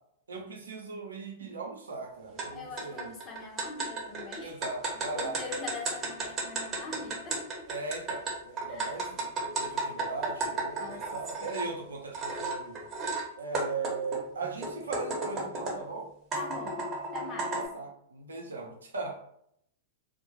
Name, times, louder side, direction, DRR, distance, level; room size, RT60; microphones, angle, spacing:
voice 1, 0.3-3.2 4.4-5.4 7.7-12.9 13.4-16.1 17.4-19.3, right 4 dB, 85° right, 0 dB, 0.7 m, -39 dB
sound 1, 2.4-2.5 2.8-11.7 12.1-13.2 13.5-15.9 16.3-17.7, right 3 dB, 30° right, 1.0 m, -34 dB
voice 2, 2.5-4.6 5.1-7.7 8.7-9.0 10.8-11.1 11.4-11.6 16.3-17.6, left 3 dB, 35° left, 0 dB, 0.6 m, -42 dB
2.1 x 2.0 x 3.1 m, 0.71 s
hypercardioid pair, 105°, 0 cm